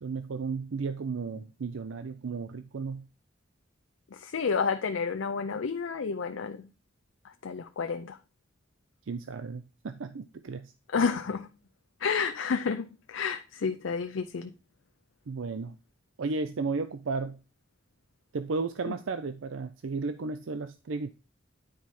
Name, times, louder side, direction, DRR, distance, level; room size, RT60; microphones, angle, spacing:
voice 1, 0.0-3.0 9.1-10.7 15.3-15.8 16.2-17.4 18.3-21.1, right 4 dB, 85° right, 0.5 m, -34 dB
voice 2, 4.1-6.7 7.4-8.2 10.9-11.5 12.0-14.5 18.9-19.0, left 5 dB, 85° left, 0.5 m, -30 dB
9.7 x 4.7 x 4.2 m
head